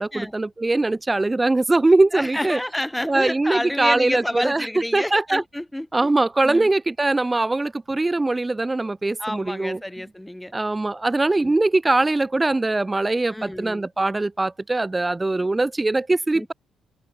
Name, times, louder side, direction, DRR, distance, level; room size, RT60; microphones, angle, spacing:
voice 1, 0.0-2.6 3.1-4.7 4.9-5.4 5.9-9.8 10.5-16.5, right 2 dB, 15° right, 1.4 m, -21 dB
voice 2, 2.1-6.1 6.4-6.7 9.2-10.5 11.3-11.5 13.3-13.9 16.3-16.5, left 1 dB, 5° left, 1.7 m, -29 dB
cardioid pair, 90°, 0 cm